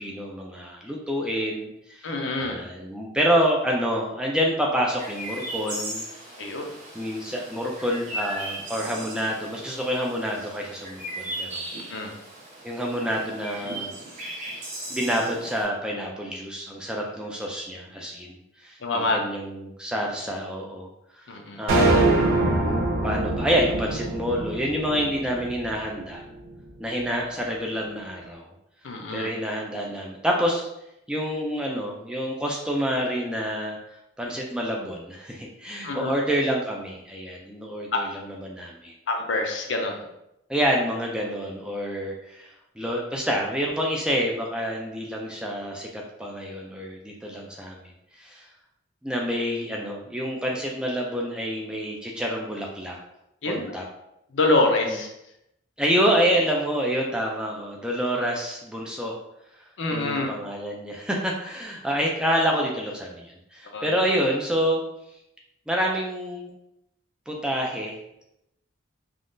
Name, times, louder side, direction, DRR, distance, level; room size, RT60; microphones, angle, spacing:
voice 1, 0.0-6.1 6.9-11.6 11.9-12.0 12.6-13.9 14.9-20.9 21.2-22.4 23.0-26.2 26.8-28.5 29.1-30.7 31.1-33.8 34.2-38.9 40.5-47.9 48.2-48.5 49.0-53.0 53.5-53.8 54.9-55.0 55.8-59.2 59.9-64.8 65.7-66.5 67.3-68.0, equal, 5° right, -1 dB, 0.3 m, -28 dB
voice 2, 2.0-2.6 6.4-6.7 11.9-12.1 18.8-19.2 21.3-21.6 28.8-29.3 35.8-36.2 37.9-38.0 39.1-40.1 53.4-53.6 54.3-55.1 59.8-60.3 63.7-63.9, left 2 dB, 70° left, 3 dB, 0.5 m, -25 dB
Chirp tweet, 5.0-15.6, right 1 dB, 40° right, 1.0 m, -37 dB
sound 1, 21.7-26.1, right 2 dB, 85° right, 0.5 m, -23 dB
3.5 x 2.3 x 2.5 m, 0.84 s
head